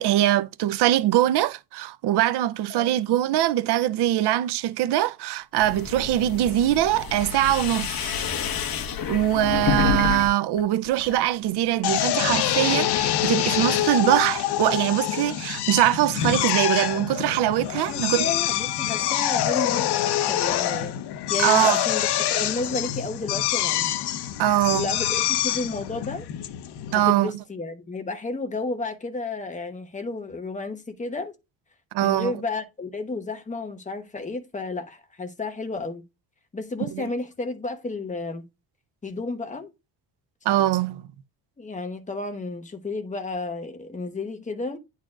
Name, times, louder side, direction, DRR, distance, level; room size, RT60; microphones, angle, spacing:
voice 1, 0.0-8.2 9.1-18.3 21.4-21.8 24.4-24.9 26.9-27.3 31.9-32.3 36.9-37.0 40.5-41.0, right 13 dB, 85° right, 0.6 m, -22 dB
sound 1, 5.6-10.3 10.6-11.2, left 7 dB, 65° left, 1.4 m, -28 dB
Drill, 11.8-27.1, left 12 dB, 85° left, 0.8 m, -26 dB
voice 2, 17.9-20.9 21.3-23.9 24.7-26.3 26.9-31.3 32.0-36.0 36.5-38.4 39.0-39.7 41.6-44.8, left 3 dB, 20° left, 1.1 m, -32 dB
10.0 x 4.1 x 2.4 m
cardioid pair, 150°, 39 cm